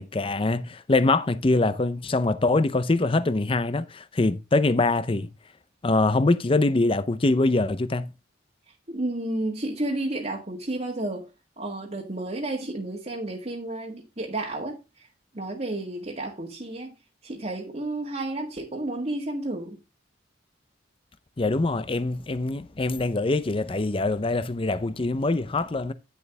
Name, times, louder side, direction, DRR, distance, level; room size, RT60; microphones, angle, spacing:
voice 1, 0.0-5.3 5.8-8.1 21.4-25.9, left 2 dB, 30° left, 0.6 m, -24 dB
voice 2, 8.9-11.3 11.6-15.1 15.3-16.9 17.2-19.8, right 2 dB, 35° right, 1.6 m, -31 dB
10.0 x 6.9 x 3.4 m
head